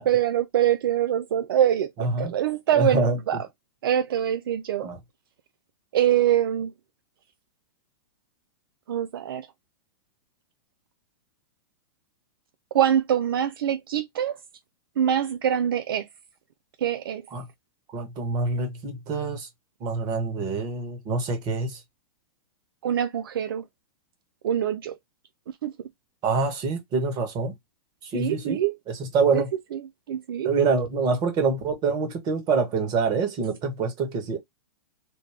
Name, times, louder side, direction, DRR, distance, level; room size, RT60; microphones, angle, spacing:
voice 1, 0.0-3.4 3.8-4.9 5.9-6.7 8.9-9.5 12.7-14.4 15.0-16.1 16.8-17.2 22.8-23.6 24.4-25.0 25.6-25.7 28.1-28.8 29.3-29.4 29.7-29.8 30.1-30.5, right 10 dB, 70° right, 0.4 m, -24 dB
voice 2, 2.0-2.3 2.7-3.2 4.8-5.0 17.3-17.4 17.9-19.5 19.8-21.8 26.2-27.5 28.0-28.6 28.9-29.5 30.4-34.4, right 4 dB, 35° right, 1.4 m, -26 dB
3.3 x 2.3 x 3.3 m
hypercardioid pair, 115°, 12 cm